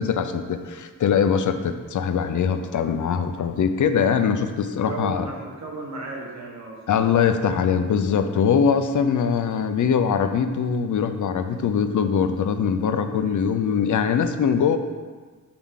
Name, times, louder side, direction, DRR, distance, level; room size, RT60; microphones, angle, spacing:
voice 1, 0.0-5.3 6.9-14.8, left 7 dB, 70° left, 8 dB, 0.5 m, -22 dB
voice 2, 4.6-7.1, right 2 dB, 55° right, -1 dB, 1.3 m, -35 dB
7.1 x 4.8 x 3.7 m, 1.5 s
wide cardioid pair, 150°, 32 cm